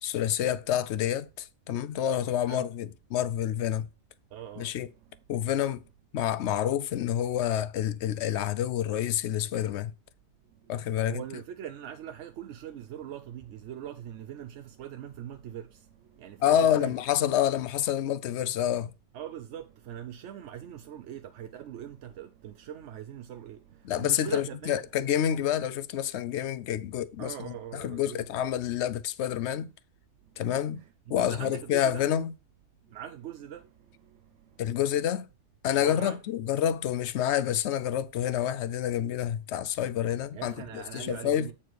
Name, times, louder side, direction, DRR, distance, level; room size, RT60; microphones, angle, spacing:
voice 1, 0.0-3.9 4.6-4.9 5.3-5.8 6.1-9.9 10.7-11.2 16.4-18.9 23.8-29.7 30.4-30.8 31.1-32.3 34.6-35.3 35.6-41.5, left 10 dB, 75° left, 0.9 m, -28 dB
voice 2, 4.3-4.7 11.0-15.7 16.2-16.9 19.1-23.6 24.0-24.8 27.2-28.3 31.1-32.1 32.9-33.6 35.8-36.2 40.3-41.5, right 10 dB, 85° right, 1.0 m, -41 dB
8.5 x 4.4 x 4.6 m
omnidirectional pair, 1.2 m